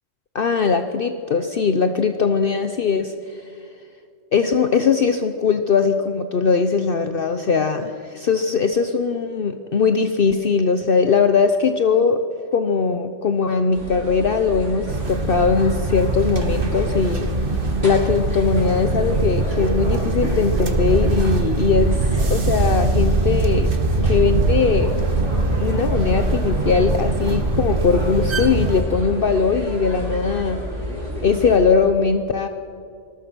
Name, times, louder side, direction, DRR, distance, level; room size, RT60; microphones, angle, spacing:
voice 1, 0.3-3.4 4.3-12.2 12.5-17.3 17.8-23.7 24.0-24.9 25.6-30.6 31.2-32.5, left 5 dB, 55° left, 8 dB, 1.0 m, -20 dB
sound 1, 13.7-31.6, right 1 dB, 90° right, 6.5 m, -30 dB
sound 2, 14.9-28.8, right 2 dB, 50° right, 1.6 m, -22 dB
25.0 x 19.5 x 6.2 m, 2.4 s
omnidirectional pair, 1.2 m